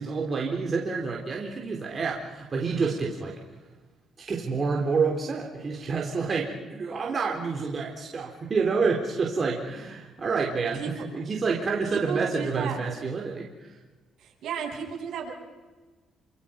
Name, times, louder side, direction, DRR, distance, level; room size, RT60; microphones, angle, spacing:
voice 1, 0.0-3.4 4.2-10.8 11.1-13.7, right 4 dB, 40° right, -1 dB, 4.1 m, -28 dB
voice 2, 11.9-12.9 14.2-15.3, right 7 dB, 75° right, -1 dB, 7.8 m, -34 dB
29.0 x 27.0 x 5.4 m, 1.3 s
cardioid pair, 90°, 0 cm